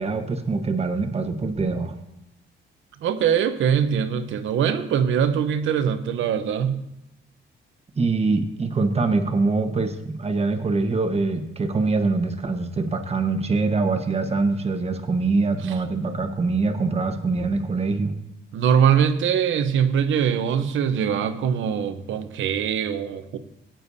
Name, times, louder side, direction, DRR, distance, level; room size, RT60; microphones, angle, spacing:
voice 1, 0.0-2.0 8.0-18.1, right 3 dB, 30° right, 6 dB, 1.3 m, -24 dB
voice 2, 3.0-6.8 15.6-15.7 18.5-23.4, right 8 dB, 75° right, 9 dB, 0.9 m, -22 dB
16.5 x 9.0 x 2.8 m, 0.87 s
cardioid pair, 90°, 20 cm